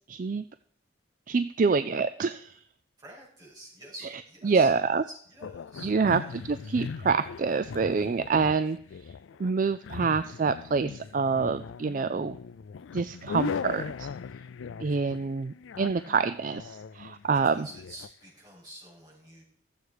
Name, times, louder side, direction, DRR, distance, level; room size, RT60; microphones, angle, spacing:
voice 1, 0.1-0.4 1.3-2.6 4.4-5.0 5.8-9.1 9.4-12.4 12.9-14.1 14.8-17.7, right 4 dB, 45° right, 12 dB, 0.4 m, -27 dB
voice 2, 3.0-6.3 6.6-6.8 17.3-19.4, right 1 dB, 20° right, -6 dB, 6.5 m, -48 dB
sound 1, 5.4-18.1, left 6 dB, 85° left, 0.4 m, -39 dB
14.0 x 8.1 x 4.8 m, 0.64 s
head